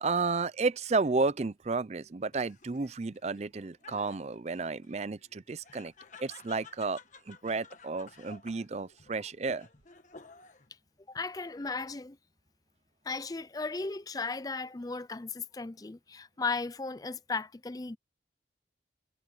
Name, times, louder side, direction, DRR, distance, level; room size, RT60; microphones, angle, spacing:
voice 1, 0.0-5.9 6.2-7.0 7.3-9.7, right 3 dB, 35° right, 0.5 m, -32 dB
Laughter, 2.3-10.7 11.2-11.8, left 4 dB, 40° left, 1.3 m, -54 dB
voice 2, 11.1-12.2 13.1-18.0, left 4 dB, 20° left, 0.4 m, -36 dB
head